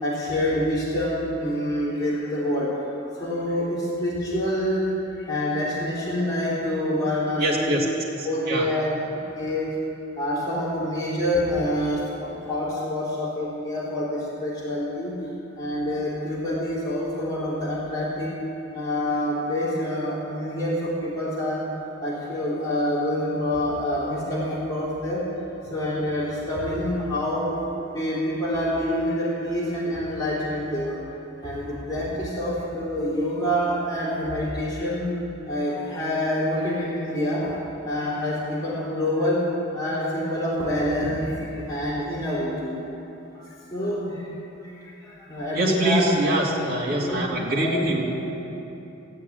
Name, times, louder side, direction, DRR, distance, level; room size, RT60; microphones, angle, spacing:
voice 1, 0.0-2.7 3.1-7.7 8.2-9.8 10.1-15.2 15.6-18.4 18.7-21.6 22.0-25.2 25.7-27.6 27.9-31.0 31.4-35.1 35.5-37.6 37.9-39.4 39.7-42.7 43.4-44.3 44.6-44.8 45.0-46.1 46.5-46.7 47.0-47.2 47.5-47.9 48.2-48.3, left 1 dB, 20° left, -9 dB, 3.3 m, -27 dB
voice 2, 7.4-7.8 8.2-8.7 45.5-48.3, right 1 dB, 50° right, -3 dB, 2.6 m, -24 dB
16.5 x 8.2 x 9.1 m, 2.8 s
head